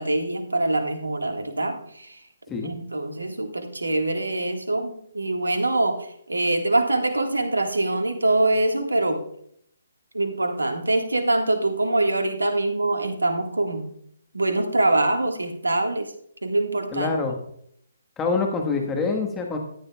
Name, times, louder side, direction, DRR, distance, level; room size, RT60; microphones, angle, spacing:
voice 1, 0.0-2.2 2.6-9.2 10.1-13.9 14.3-16.1 16.4-17.2, right 2 dB, 85° right, 4 dB, 1.6 m, -24 dB
voice 2, 16.9-17.3 18.2-19.6, left 4 dB, 15° left, 2 dB, 1.3 m, -25 dB
13.5 x 9.6 x 2.3 m, 0.69 s
figure-of-eight pair, 140°, 0 cm